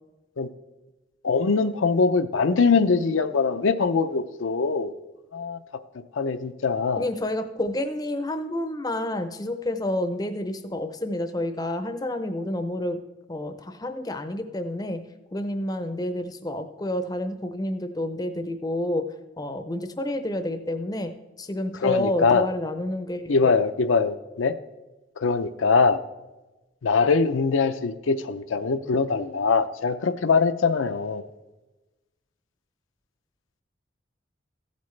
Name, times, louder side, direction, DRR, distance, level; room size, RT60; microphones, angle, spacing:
voice 1, 1.2-4.9 5.3-5.6 6.1-7.0 21.8-22.5 23.3-24.5 25.2-26.0 26.8-31.2, left 4 dB, 80° left, 9 dB, 0.5 m, -22 dB
voice 2, 6.9-13.0 13.3-15.0 15.3-19.0 19.4-23.5, left 1 dB, 20° left, 8 dB, 0.6 m, -29 dB
15.0 x 8.3 x 3.2 m, 1.1 s
head